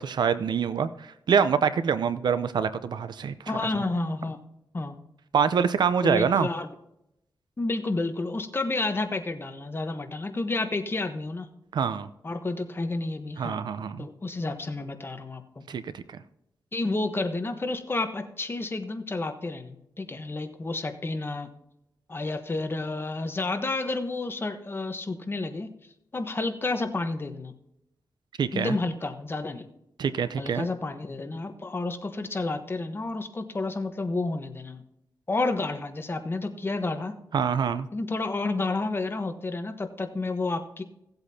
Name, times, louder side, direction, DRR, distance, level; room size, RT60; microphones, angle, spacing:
voice 1, 0.0-3.4 5.3-6.5 11.7-12.1 13.4-14.1 15.7-16.2 28.4-28.7 30.0-30.7 37.3-37.9, right 7 dB, 70° right, 13 dB, 0.6 m, -25 dB
voice 2, 3.5-4.4 4.7-5.0 6.0-6.7 7.6-11.5 12.2-13.6 14.0-15.6 16.7-21.5 22.1-25.7 26.1-27.5 28.5-29.7 30.4-34.8 35.3-37.2 37.9-40.8, left 2 dB, 30° left, 7 dB, 1.1 m, -30 dB
16.5 x 8.0 x 2.8 m, 0.82 s
cardioid pair, 95°, 8 cm